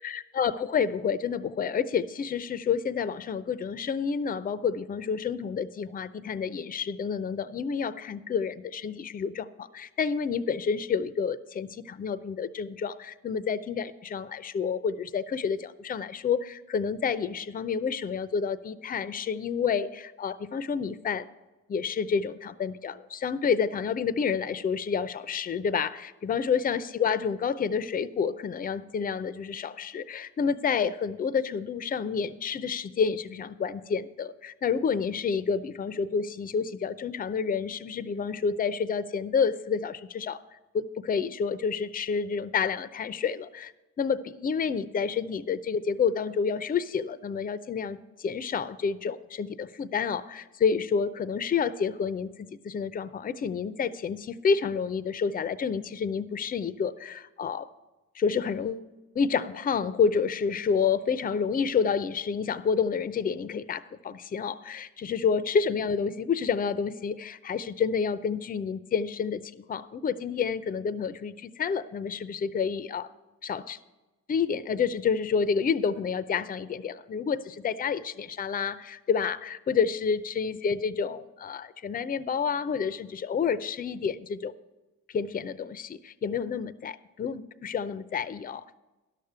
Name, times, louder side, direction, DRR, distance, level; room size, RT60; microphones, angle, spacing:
voice 1, 0.0-21.3 21.7-40.4 40.7-43.7 44.0-57.7 58.2-58.9 59.2-73.1 73.4-73.8 74.3-84.5 85.1-88.6, left 6 dB, 30° left, 15 dB, 0.5 m, -29 dB
11.5 x 6.6 x 6.8 m, 1.1 s
cardioid pair, 90°, 30 cm